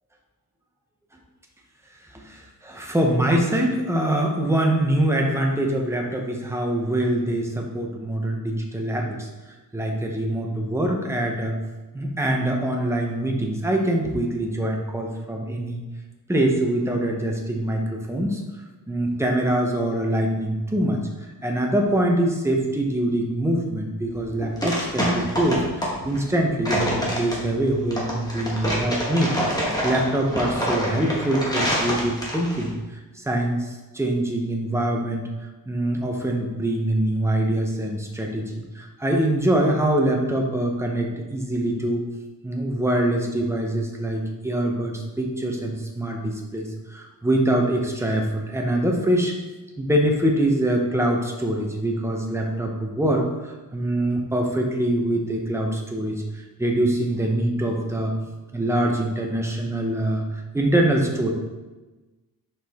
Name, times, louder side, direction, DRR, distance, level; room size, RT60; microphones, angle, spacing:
voice 1, 2.1-9.3 9.7-11.6 11.9-15.8 16.3-18.4 18.9-21.0 21.4-29.3 29.8-32.8 33.1-35.2 35.7-42.0 42.4-49.3 49.8-56.2 56.6-58.1 58.5-61.3, right 1 dB, 5° right, 0 dB, 0.7 m, -24 dB
sound 1, 24.1-32.7, equal, 10° left, 1.1 m, -26 dB
5.9 x 4.9 x 3.5 m, 1.2 s
wide cardioid pair, 180°, 39 cm